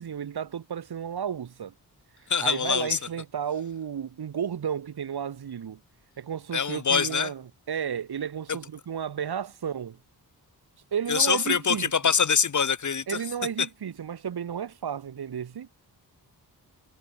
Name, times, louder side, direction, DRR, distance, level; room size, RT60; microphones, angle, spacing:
voice 1, 0.0-1.7 2.4-5.8 6.2-10.0 10.9-12.1 13.1-15.7, right 8 dB, 75° right, 4.8 m, -33 dB
voice 2, 2.3-3.0 6.5-7.3 11.1-13.2, left 6 dB, 50° left, 3.4 m, -24 dB
wide cardioid pair, 145°, 39 cm